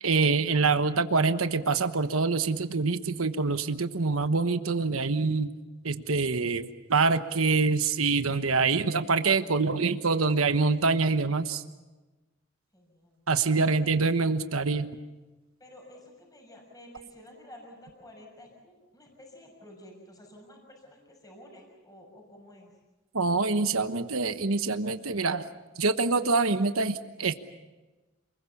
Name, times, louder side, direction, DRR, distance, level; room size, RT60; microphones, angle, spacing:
voice 1, 0.0-5.5 5.8-11.6 13.3-14.9 23.1-25.5 25.8-27.4, right 4 dB, 85° right, 9 dB, 1.2 m, -25 dB
voice 2, 12.7-13.2 13.6-14.0 15.6-22.7, left 1 dB, 20° left, 1 dB, 6.6 m, -51 dB
28.5 x 21.5 x 7.2 m, 1.2 s
head